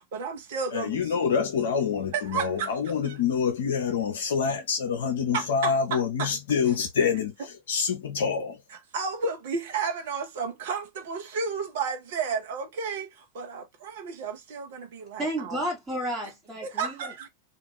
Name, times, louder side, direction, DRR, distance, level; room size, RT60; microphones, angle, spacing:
voice 1, 0.1-1.3 2.1-2.7 3.1-3.2 5.3-6.4 8.9-13.1 13.3-15.6 16.6-17.3, right 5 dB, 55° right, 0.9 m, -32 dB
voice 2, 0.7-7.3 7.7-8.6, left 6 dB, 60° left, 0.5 m, -26 dB
voice 3, 15.2-17.3, right 1 dB, 15° right, 1.2 m, -32 dB
2.4 x 2.4 x 3.1 m
figure-of-eight pair, 90°, 0 cm